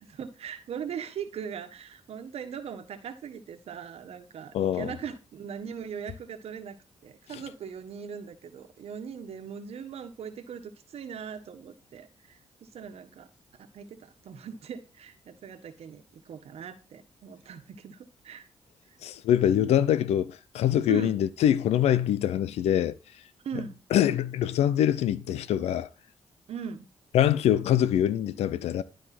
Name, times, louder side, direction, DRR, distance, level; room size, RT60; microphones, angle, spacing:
voice 1, 0.1-6.8 7.0-13.3 13.6-18.5 20.9-21.2 23.4-23.8 26.5-26.9, right 7 dB, 70° right, 1.4 m, -40 dB
voice 2, 4.5-4.9 19.0-23.0 23.9-25.9 27.1-28.8, left 10 dB, 90° left, 0.7 m, -24 dB
12.5 x 5.2 x 6.0 m
cardioid pair, 70°, 11 cm